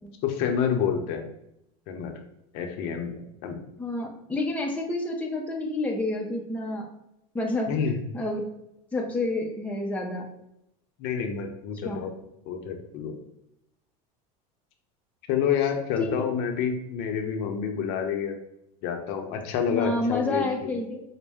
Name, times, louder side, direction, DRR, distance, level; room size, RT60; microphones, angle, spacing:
voice 1, 0.2-1.2 1.9-2.1 2.5-3.6 7.7-8.0 11.0-12.1 12.5-13.1 15.3-18.4 18.8-20.7, left 7 dB, 60° left, 4 dB, 0.7 m, -28 dB
voice 2, 3.8-6.9 7.3-7.7 8.1-8.5 8.9-10.3 11.8-12.1 16.0-16.1 19.7-21.0, left 2 dB, 10° left, 0 dB, 0.6 m, -29 dB
5.1 x 2.1 x 3.5 m, 0.81 s
supercardioid pair, 130°, 18 cm